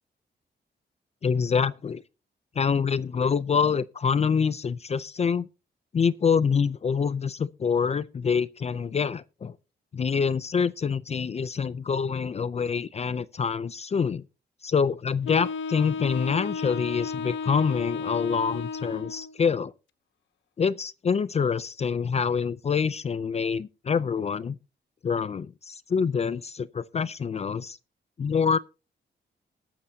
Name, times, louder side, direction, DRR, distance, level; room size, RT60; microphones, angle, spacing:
voice 1, 1.2-2.0 2.6-5.5 5.9-9.5 9.9-14.2 14.6-19.7 20.6-24.6 25.0-27.8 28.2-28.6, left 6 dB, 35° left, 0.5 m, -26 dB
Wind instrument woodwind instrument, 15.2-19.4, left 5 dB, 90° left, 0.8 m, -33 dB
20.5 x 8.7 x 2.8 m
wide cardioid pair, 140°, 19 cm